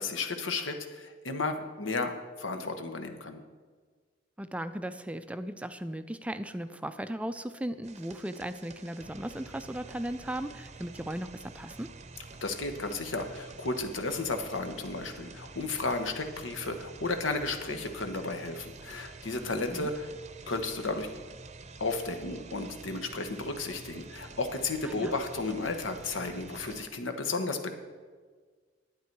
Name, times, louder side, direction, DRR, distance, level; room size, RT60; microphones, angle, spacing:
voice 1, 0.0-3.4 12.4-20.1 20.5-21.1 21.8-27.7, left 3 dB, 90° left, 7 dB, 1.1 m, -33 dB
voice 2, 4.4-11.9 19.7-19.9 24.8-25.1, right 1 dB, 5° right, 10 dB, 0.3 m, -37 dB
sound 1, 7.8-26.9, right 3 dB, 35° right, 0.7 m, -48 dB
11.5 x 9.2 x 4.6 m, 1.5 s
head